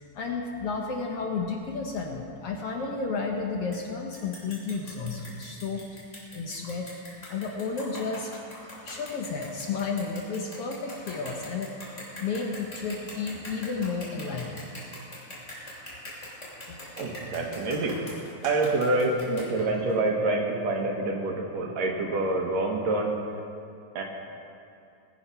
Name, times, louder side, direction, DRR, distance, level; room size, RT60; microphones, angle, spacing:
voice 1, 0.0-5.8 6.3-6.9 7.3-8.3 8.8-14.6 15.6-15.7 16.7-16.8, left 4 dB, 60° left, 1 dB, 1.7 m, -32 dB
sound 1, 3.7-3.8 4.1-20.0, left 1 dB, 25° left, 3.2 m, -43 dB
voice 2, 17.0-18.0 18.4-23.1 24.0-24.1, right 2 dB, 65° right, 0 dB, 2.6 m, -27 dB
19.5 x 8.8 x 5.6 m, 2.6 s
omnidirectional pair, 3.4 m